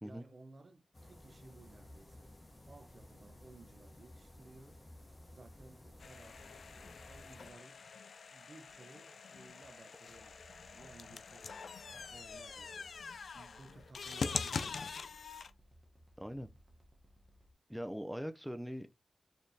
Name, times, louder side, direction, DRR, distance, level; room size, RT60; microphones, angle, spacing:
voice 1, 0.0-2.3 2.7-6.5 7.0-7.9 8.3-14.8, right 3 dB, 50° right, 0.6 m, -58 dB
sound 1, 0.9-7.5, left 1 dB, 30° left, 0.9 m, -56 dB
sound 2, 6.0-15.5, left 5 dB, 85° left, 0.3 m, -44 dB
sound 3, 10.1-17.5, equal, 25° right, 0.9 m, -63 dB
voice 2, 16.2-16.5 17.7-19.1, equal, 5° right, 0.4 m, -42 dB
4.3 x 2.9 x 2.6 m
wide cardioid pair, 120°, 0 cm